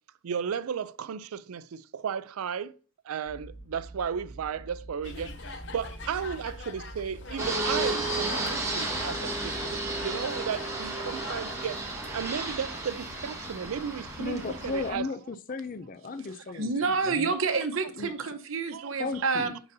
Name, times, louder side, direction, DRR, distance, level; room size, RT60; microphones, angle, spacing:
voice 1, 0.2-2.7 3.0-11.8 12.1-15.1 18.7-18.9, right 7 dB, 85° right, 0.4 m, -34 dB
sound 1, 3.3-10.1, right 2 dB, 90° left, 1.8 m, -46 dB
sound 2, 5.0-15.0, left 3 dB, 55° left, 0.8 m, -45 dB
Fixed-wing aircraft airplane, 7.4-14.9, right 2 dB, 15° right, 1.5 m, -33 dB
voice 2, 14.2-17.3 18.0-18.1 19.0-19.6, left 3 dB, 40° left, 0.4 m, -35 dB
voice 3, 16.5-19.6, right 4 dB, 70° right, 0.9 m, -28 dB
10.5 x 3.9 x 2.7 m
head